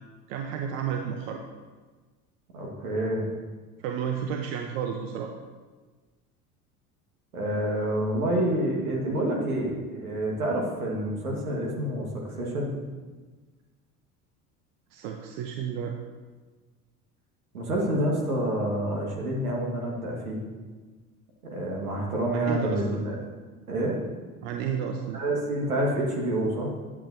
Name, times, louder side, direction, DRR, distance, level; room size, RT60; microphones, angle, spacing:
voice 1, 0.3-1.4 3.8-5.3 14.9-15.9 22.3-22.8 24.4-25.2, right 8 dB, 65° right, 3 dB, 0.8 m, -31 dB
voice 2, 2.5-3.3 7.3-12.8 17.5-20.4 21.4-23.1 23.7-24.0 25.1-26.7, right 1 dB, 90° right, -1 dB, 1.6 m, -28 dB
8.5 x 8.4 x 2.7 m, 1.3 s
hypercardioid pair, 70°, 43 cm